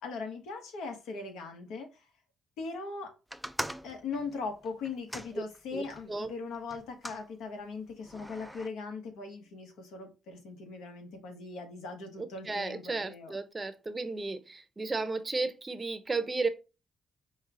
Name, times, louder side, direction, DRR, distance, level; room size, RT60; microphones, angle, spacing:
voice 1, 0.0-2.0 2.6-3.1 3.8-13.4, left 4 dB, 90° left, 1.2 m, -40 dB
sound 1, 3.3-6.1 6.7-7.3 8.0-8.7, equal, ahead, 0.3 m, -41 dB
voice 2, 5.7-6.3 12.2-16.5, right 3 dB, 25° right, 0.7 m, -34 dB
5.4 x 2.3 x 3.8 m
cardioid pair, 90°, 0 cm